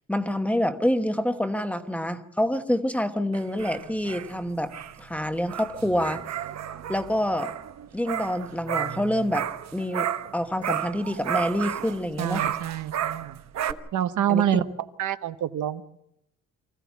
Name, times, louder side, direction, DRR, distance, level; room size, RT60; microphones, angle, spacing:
voice 1, 0.1-4.7 5.0-6.2 6.9-7.5 7.9-9.5 9.7-12.4 14.3-14.6, left 1 dB, 5° left, 8 dB, 1.1 m, -27 dB
sound 1, 3.3-10.4 10.6-13.7, right 10 dB, 60° right, 1.0 m, -32 dB
voice 2, 12.2-13.4 13.9-14.6 15.0-15.8, right 10 dB, 90° right, 11 dB, 1.0 m, -26 dB
24.0 x 15.5 x 8.3 m, 0.81 s
wide cardioid pair, 175°, 30 cm